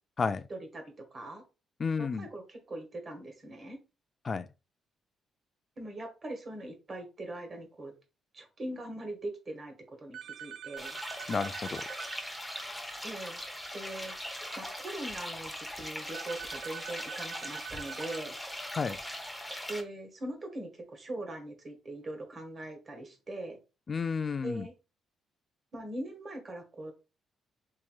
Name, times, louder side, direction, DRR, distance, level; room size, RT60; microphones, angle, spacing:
voice 1, 0.5-1.4 2.0-3.8 5.8-7.9 8.3-11.0 13.0-13.4 13.7-14.2 14.6-18.3 19.7-23.6 24.4-24.7 25.7-26.9, right 1 dB, 40° right, 1.5 m, -41 dB
voice 2, 1.8-2.3 4.2-4.5 11.3-11.8 18.8-19.0 23.9-24.7, left 5 dB, 35° left, 0.4 m, -31 dB
sound 1, 10.1-12.2 16.1-18.2, right 10 dB, 80° right, 0.3 m, -44 dB
sound 2, 10.8-19.8, equal, 5° left, 0.9 m, -40 dB
4.6 x 3.0 x 2.3 m
cardioid pair, 90°, 0 cm